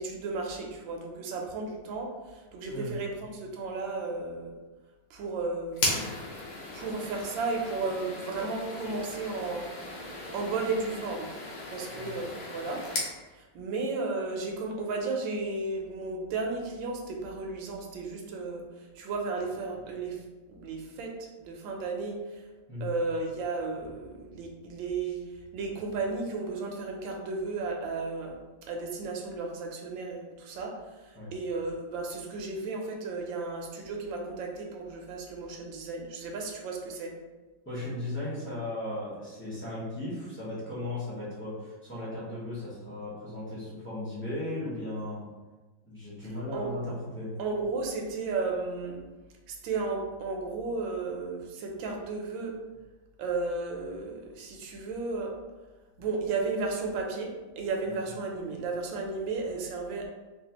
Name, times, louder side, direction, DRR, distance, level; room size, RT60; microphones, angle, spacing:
voice 1, 0.0-4.6 5.1-6.0 6.7-9.7 10.3-11.3 11.7-12.8 13.3-20.2 20.5-22.4 22.8-25.2 25.5-37.1 46.5-46.8 47.4-49.0 49.5-52.5 53.2-55.3 56.0-60.1, right 3 dB, 80° right, 1 dB, 1.3 m, -34 dB
voice 2, 2.7-3.0 11.9-12.2 22.7-22.9 31.2-31.3 37.6-45.2 45.9-47.3, left 1 dB, 15° left, -9 dB, 0.4 m, -36 dB
sound 1, 5.7-13.1, left 2 dB, 80° left, 1.5 m, -36 dB
4.0 x 2.4 x 2.8 m, 1.2 s
omnidirectional pair, 2.2 m